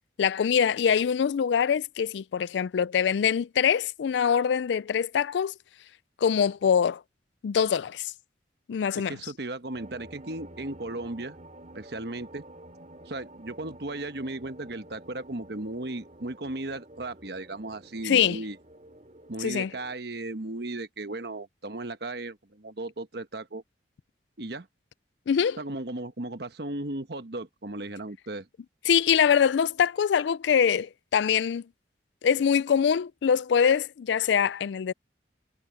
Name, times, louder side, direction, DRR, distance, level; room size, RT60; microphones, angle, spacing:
voice 1, 0.2-5.5 6.2-7.0 7.4-8.1 8.7-9.2 18.0-18.4 19.4-19.7 25.3-25.6 28.9-31.6 32.2-34.9, left 7 dB, 75° left, 0.3 m, -24 dB
voice 2, 8.9-11.4 11.7-12.4 13.1-18.6 19.3-23.6 24.4-24.7 25.6-28.5, right 2 dB, 60° right, 1.2 m, -36 dB
sound 1, 9.7-19.9, right 1 dB, 40° right, 3.2 m, -50 dB
head